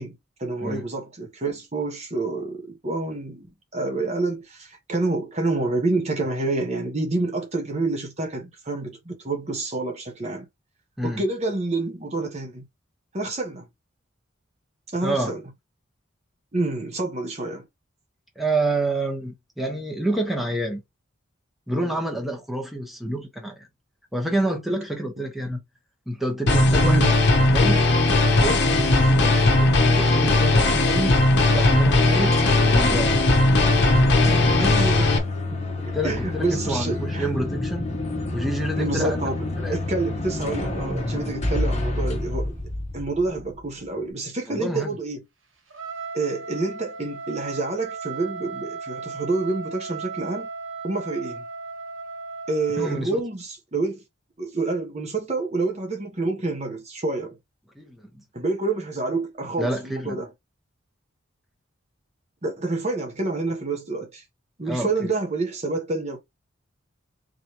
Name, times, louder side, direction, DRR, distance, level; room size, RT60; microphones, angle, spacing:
voice 1, 0.0-3.5 3.7-10.5 11.0-12.7 13.1-13.7 14.9-15.4 16.5-17.7 26.8-27.2 34.5-35.2 35.5-37.3 38.8-42.6 42.9-45.2 46.1-50.5 50.8-51.4 52.5-54.0 54.4-57.4 58.3-60.3 62.4-64.2 64.6-66.2, right 3 dB, 35° right, 0.9 m, -28 dB
voice 2, 15.0-15.3 18.4-20.8 21.7-23.7 24.1-25.6 26.1-27.1 27.4-27.8 28.4-29.7 30.0-33.2 35.9-37.9 38.3-39.2 39.6-39.8 44.5-45.0 52.8-53.2 57.7-58.2 59.6-60.2 64.6-65.1, right 1 dB, ahead, 1.0 m, -28 dB
sound 1, 26.5-35.2, left 2 dB, 55° left, 0.9 m, -18 dB
sound 2, 32.0-43.7, left 2 dB, 35° left, 1.0 m, -28 dB
Trumpet, 45.7-53.0, right 4 dB, 80° right, 1.4 m, -36 dB
3.9 x 3.1 x 3.0 m
head